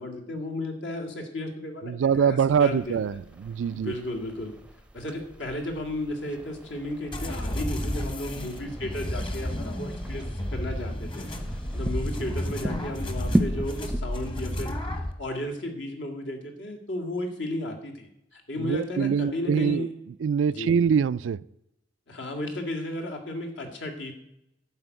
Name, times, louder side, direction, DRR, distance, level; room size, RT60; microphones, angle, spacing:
voice 1, 0.0-3.0 3.7-4.5 4.9-10.2 10.5-11.3 11.7-14.8 15.2-19.9 20.5-20.8 22.1-24.1, left 1 dB, 70° left, 2 dB, 2.0 m, -34 dB
voice 2, 1.9-3.9 18.6-19.9 20.2-21.4, right 7 dB, 85° right, 17 dB, 0.3 m, -24 dB
sound 1, 2.5-14.0, right 1 dB, 5° right, 0.6 m, -36 dB
sound 2, 7.1-15.1, equal, 25° left, 1.1 m, -32 dB
11.0 x 5.1 x 8.2 m, 0.83 s
head